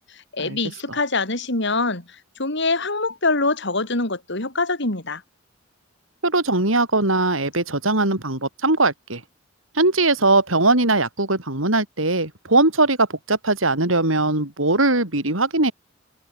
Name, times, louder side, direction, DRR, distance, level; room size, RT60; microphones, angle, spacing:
voice 1, 0.1-5.2, left 3 dB, 60° left, 4.7 m, -24 dB
voice 2, 6.2-9.2 9.8-15.7, right 2 dB, 85° right, 7.1 m, -20 dB
head